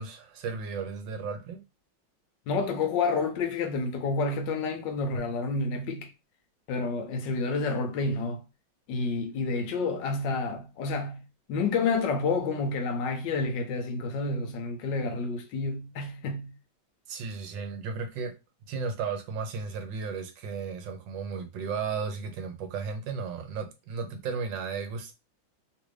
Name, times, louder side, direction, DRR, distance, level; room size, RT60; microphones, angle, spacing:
voice 1, 0.0-1.6 17.1-18.3 18.7-25.1, right 5 dB, 75° right, 1.3 m, -34 dB
voice 2, 2.5-6.1 6.7-8.4 8.9-11.2 11.5-16.5, left 4 dB, 75° left, 1.2 m, -29 dB
3.2 x 2.5 x 3.1 m
omnidirectional pair, 2.2 m